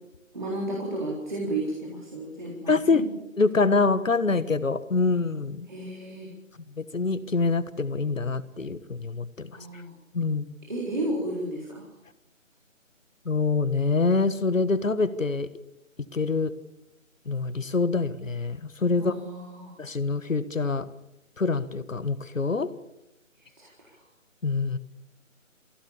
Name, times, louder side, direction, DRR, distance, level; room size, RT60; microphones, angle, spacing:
voice 1, 0.3-3.1 5.7-6.3 9.5-9.9 10.7-11.9 19.0-19.8 23.4-24.0, right 1 dB, 35° right, -3 dB, 4.0 m, -33 dB
voice 2, 2.7-3.1 3.4-5.7 6.8-9.6 10.1-10.5 13.3-15.5 16.1-16.5 17.3-19.2 19.8-20.9 21.4-22.7 24.4-24.8, left 4 dB, 75° left, 13 dB, 1.6 m, -25 dB
24.5 x 16.0 x 7.1 m, 0.91 s
figure-of-eight pair, 180°, 40 cm